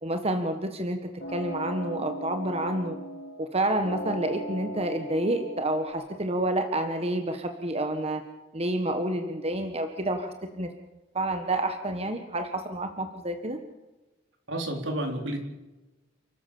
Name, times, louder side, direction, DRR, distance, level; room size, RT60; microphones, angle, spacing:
voice 1, 0.0-1.0 1.3-3.0 3.4-8.2 8.5-10.7 11.1-13.6, right 1 dB, 35° right, 6 dB, 1.5 m, -29 dB
sound 1, 1.2-3.5 3.8-5.9, right 1 dB, 70° left, 6.8 m, -37 dB
voice 2, 14.5-15.4, right 1 dB, 75° right, 3 dB, 4.1 m, -30 dB
29.5 x 13.5 x 7.1 m, 1.1 s
head